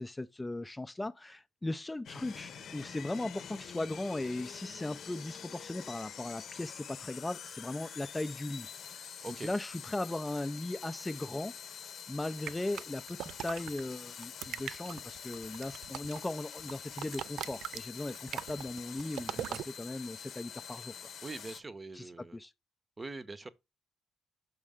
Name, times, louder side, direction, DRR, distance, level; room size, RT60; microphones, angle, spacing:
voice 1, 0.0-11.5 12.1-21.1 21.9-22.5, left 2 dB, 15° left, 0.4 m, -38 dB
sound 1, 2.1-21.6, left 8 dB, 65° left, 0.8 m, -46 dB
sound 2, 12.5-13.8 14.2-16.3 16.6-19.7, right 10 dB, 75° right, 0.3 m, -40 dB
voice 2, 21.2-22.4 23.0-23.5, right 3 dB, 25° right, 0.8 m, -43 dB
6.2 x 5.5 x 3.5 m
cardioid pair, 90°, 0 cm